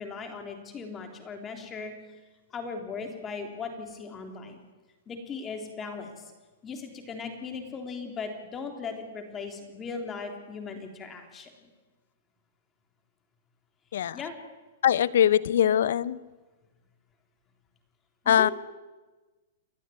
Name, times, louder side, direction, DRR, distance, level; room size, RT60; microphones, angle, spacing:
voice 1, 0.0-1.9 2.5-4.6 5.1-6.3 6.6-11.7 14.1-14.4 18.2-18.5, left 5 dB, 20° left, 4 dB, 3.7 m, -38 dB
voice 2, 14.8-16.2 18.3-18.5, left 10 dB, 70° left, 19 dB, 0.8 m, -22 dB
29.5 x 11.5 x 9.5 m, 1.2 s
hypercardioid pair, 140°, 0 cm